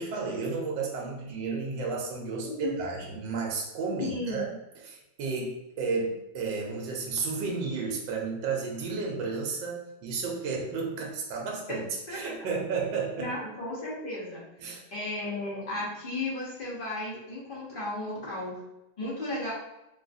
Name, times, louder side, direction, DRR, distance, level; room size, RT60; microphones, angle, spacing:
voice 1, 0.0-13.3 14.6-14.8, right 4 dB, 80° right, 0 dB, 1.3 m, -32 dB
voice 2, 4.0-4.4 11.7-11.8 12.1-12.3 13.2-14.4 14.9-18.6 19.0-19.5, left 2 dB, 50° left, -6 dB, 0.6 m, -34 dB
3.5 x 2.4 x 2.5 m, 0.92 s
omnidirectional pair, 2.1 m